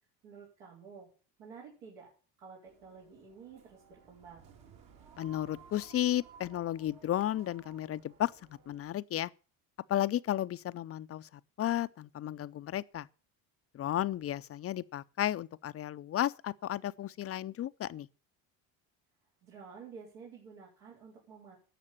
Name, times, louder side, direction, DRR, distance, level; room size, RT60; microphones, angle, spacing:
voice 1, 0.2-1.1 1.4-2.1 2.4-4.5 19.4-21.6, right 6 dB, 85° right, 4.5 m, -51 dB
sound 1, 2.7-8.9, right 7 dB, 60° right, 3.0 m, -57 dB
voice 2, 5.2-8.3 8.7-9.3 9.9-11.3 11.6-13.1 13.7-18.1, left 12 dB, 35° left, 0.5 m, -33 dB
11.0 x 6.7 x 8.7 m
supercardioid pair, 85°, 40 cm